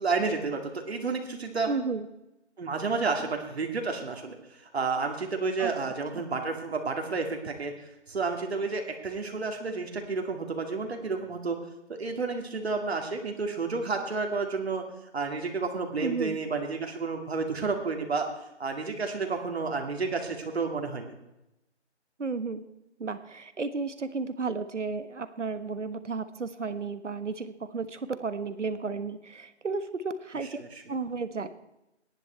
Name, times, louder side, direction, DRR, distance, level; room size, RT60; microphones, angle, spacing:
voice 1, 0.0-1.7 2.6-11.6 11.9-14.9 15.1-18.3 18.6-21.1 30.6-30.8, right 4 dB, 60° right, 4 dB, 2.2 m, -31 dB
voice 2, 1.7-2.1 5.6-5.7 6.1-6.2 16.0-16.4 22.2-22.6 23.0-30.6 30.9-31.5, right 4 dB, 90° right, 12 dB, 1.4 m, -33 dB
18.0 x 11.0 x 4.4 m, 0.92 s
figure-of-eight pair, 160°, 35 cm